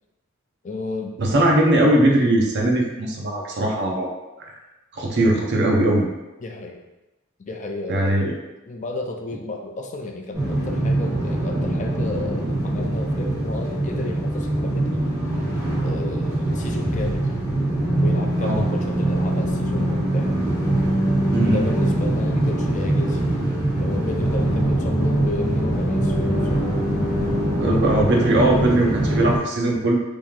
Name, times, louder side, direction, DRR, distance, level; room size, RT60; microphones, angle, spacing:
voice 1, 0.6-1.2 6.4-6.8 7.4-15.0 15.8-17.3 18.0-20.4 21.5-23.2 23.8-26.7 27.7-27.8 28.1-28.4, left 2 dB, 35° left, 2 dB, 0.4 m, -33 dB
voice 2, 1.2-4.1 4.9-6.1 7.9-8.3 18.4-18.6 21.3-21.6 27.6-29.9, right 1 dB, 55° right, 0 dB, 0.7 m, -19 dB
sound 1, 10.3-29.4, right 1 dB, 15° right, 1.5 m, -23 dB
sound 2, 23.8-28.9, equal, 60° left, 0.8 m, -30 dB
3.0 x 2.7 x 3.6 m, 1.0 s
head